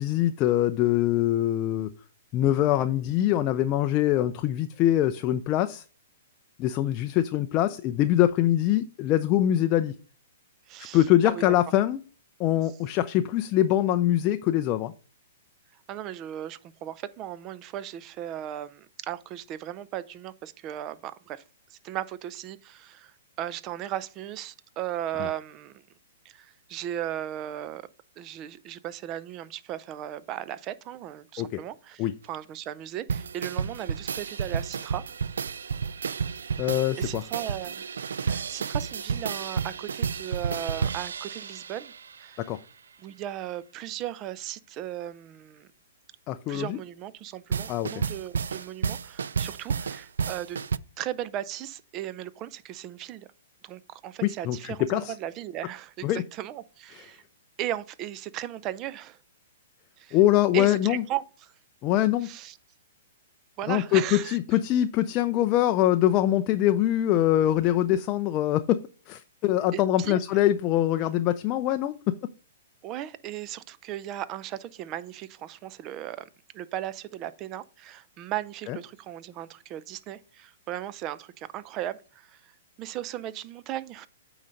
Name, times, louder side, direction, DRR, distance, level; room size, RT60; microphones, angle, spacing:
voice 1, 0.0-1.9 2.3-5.8 6.6-9.9 10.9-12.0 12.4-14.9 31.4-31.5 32.0-32.1 36.6-37.2 42.4-42.6 46.3-46.8 47.7-47.9 54.2-55.1 56.0-56.2 60.1-61.0 61.8-62.3 63.7-68.8 69.1-72.2 78.7-78.8, left 13 dB, 30° left, 0.4 m, -23 dB
voice 2, 10.7-11.6 15.9-21.4 21.7-25.8 26.2-27.9 28.2-35.0 37.0-37.8 38.2-41.9 42.2-42.4 43.0-45.7 46.5-50.6 51.0-53.3 53.6-57.2 57.6-59.2 60.0-60.2 60.5-61.5 62.2-62.6 63.6-64.4 69.7-70.2 72.8-76.3 76.5-82.5 82.8-84.1, right 12 dB, 30° right, 0.5 m, -36 dB
sound 1, 33.1-42.3 47.5-50.8, right 6 dB, 90° right, 0.3 m, -31 dB
8.9 x 4.0 x 5.1 m
hypercardioid pair, 150°, 0 cm